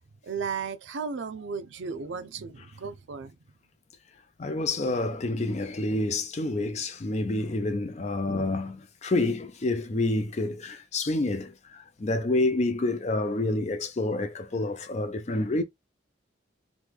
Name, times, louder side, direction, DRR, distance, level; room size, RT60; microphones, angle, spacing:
voice 1, 0.2-3.4, right 5 dB, 80° right, 0.5 m, -35 dB
voice 2, 4.4-15.6, left 2 dB, 35° left, 0.4 m, -28 dB
3.0 x 2.2 x 3.5 m
head